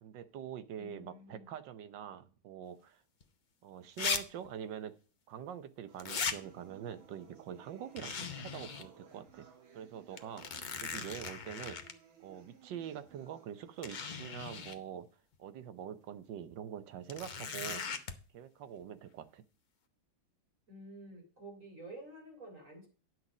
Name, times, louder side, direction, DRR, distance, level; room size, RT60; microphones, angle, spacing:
voice 1, 0.0-3.0 3.6-5.0 5.3-9.5 9.7-11.8 12.2-15.1 15.4-17.8 18.3-19.4, right 9 dB, 70° right, 13 dB, 1.4 m, -45 dB
voice 2, 0.7-1.5 20.7-22.9, right 1 dB, 40° right, -1 dB, 3.7 m, -50 dB
sound 1, 3.2-3.3 4.0-4.2 4.4-4.5 6.0-6.4 8.0-8.9 9.3-9.4 10.2-11.9 13.1-13.2 13.8-14.8 17.1-18.1, left 5 dB, 65° left, 0.4 m, -38 dB
sound 2, 5.9-13.9, right 7 dB, 85° right, 2.3 m, -59 dB
10.0 x 6.3 x 4.9 m, 0.37 s
omnidirectional pair, 2.1 m